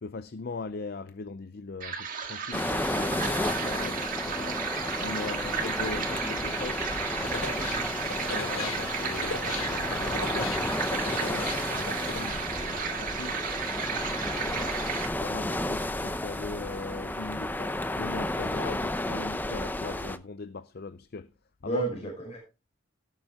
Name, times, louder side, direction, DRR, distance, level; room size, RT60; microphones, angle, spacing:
voice 1, 0.0-4.6 5.0-6.9 7.2-7.7 8.3-13.4 14.3-14.7 15.2-21.3 21.6-21.8, left 3 dB, 50° left, 0.5 m, -40 dB
sound 1, 1.8-15.1, right 6 dB, 40° right, 1.8 m, -34 dB
sound 2, 2.5-20.2, left 1 dB, 10° left, 0.6 m, -32 dB
voice 2, 5.2-5.7 7.6-7.8 8.5-8.6 13.9-14.2 21.6-22.4, right 3 dB, 30° left, 5.3 m, -35 dB
sound 3, 7.2-12.3, left 3 dB, 90° left, 2.7 m, -39 dB
17.5 x 7.0 x 3.5 m
head